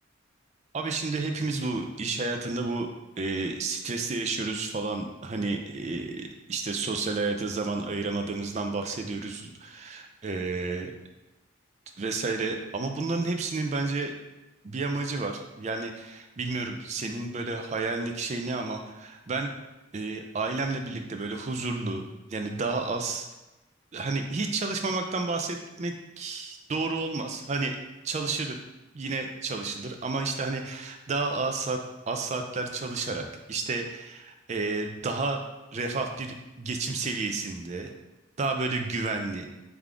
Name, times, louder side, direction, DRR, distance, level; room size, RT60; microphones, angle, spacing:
voice 1, 0.7-2.9 3.2-10.9 12.0-14.1 14.6-19.5 19.9-22.0 22.3-23.3 23.9-27.8 28.0-28.6 28.9-35.4 35.7-37.9 38.4-39.5, right 3 dB, 30° right, 4 dB, 0.3 m, -31 dB
3.5 x 3.5 x 3.6 m, 1.0 s
head